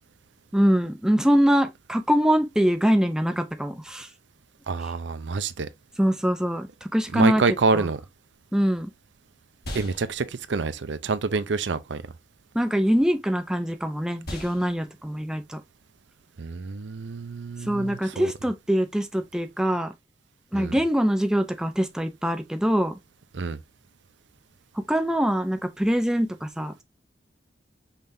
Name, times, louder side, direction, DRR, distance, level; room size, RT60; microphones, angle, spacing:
voice 1, 0.5-4.1 6.0-7.4 7.7-7.9 8.5-8.9 12.5-15.6 17.7-19.9 20.5-23.0 24.7-26.8, equal, 5° right, 0.6 m, -23 dB
voice 2, 4.7-5.7 7.1-8.0 9.7-12.0 16.4-18.3 20.5-20.8 23.3-23.6, right 4 dB, 85° right, 0.5 m, -27 dB
sound 1, 9.6-17.9, left 1 dB, 60° left, 1.7 m, -45 dB
5.6 x 3.5 x 2.7 m
head